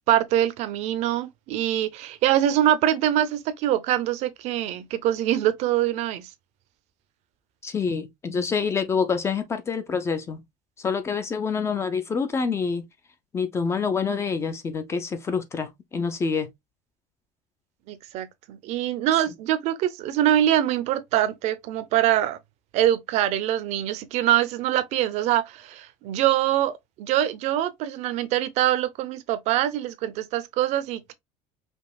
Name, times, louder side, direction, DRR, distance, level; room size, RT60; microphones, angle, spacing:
voice 1, 0.0-6.3 17.9-22.4 22.7-31.1, right 12 dB, 50° right, 0.6 m, -24 dB
voice 2, 7.6-10.4 10.8-12.8 13.3-16.5, left 5 dB, 20° left, 0.5 m, -27 dB
5.2 x 2.8 x 2.3 m
cardioid pair, 165°, 15 cm